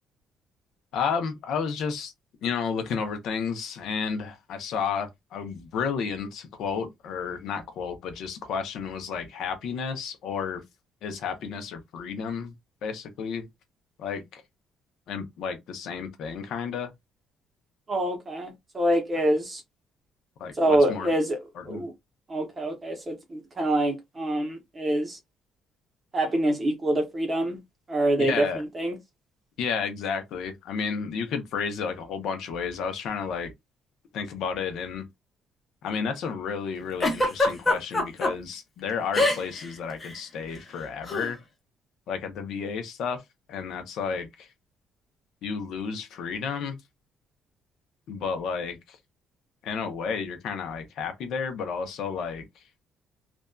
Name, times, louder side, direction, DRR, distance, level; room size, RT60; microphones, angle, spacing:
voice 1, 0.9-2.1 2.4-10.6 11.0-12.5 12.8-13.5 14.0-14.4 15.1-16.9 20.4-21.1 21.5-21.8 28.2-28.6 29.6-33.5 34.1-35.1 35.8-41.4 42.1-43.2 43.5-44.5 45.4-46.8 48.1-49.0 49.6-52.5, left 6 dB, 60° left, 0.6 m, -32 dB
voice 2, 17.9-19.6 20.6-21.4 21.6-21.9 22.3-25.2 26.1-27.6 27.9-29.0, right 1 dB, 20° right, 0.7 m, -26 dB
Giggle, 37.0-38.3 39.1-39.7 39.9-40.1 41.1-41.3, left 2 dB, 15° left, 0.7 m, -23 dB
2.5 x 2.2 x 2.2 m
cardioid pair, 175°, 0 cm